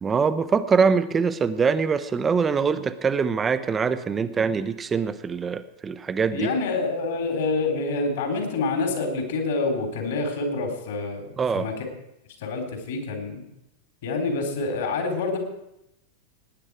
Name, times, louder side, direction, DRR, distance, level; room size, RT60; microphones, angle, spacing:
voice 1, 0.0-6.5 11.4-11.7, right 5 dB, 20° right, 13 dB, 0.8 m, -23 dB
voice 2, 6.3-11.7 12.4-13.4 14.0-15.4, left 3 dB, 60° left, 3 dB, 3.6 m, -27 dB
18.5 x 9.9 x 4.8 m, 0.85 s
figure-of-eight pair, 90°, 0 cm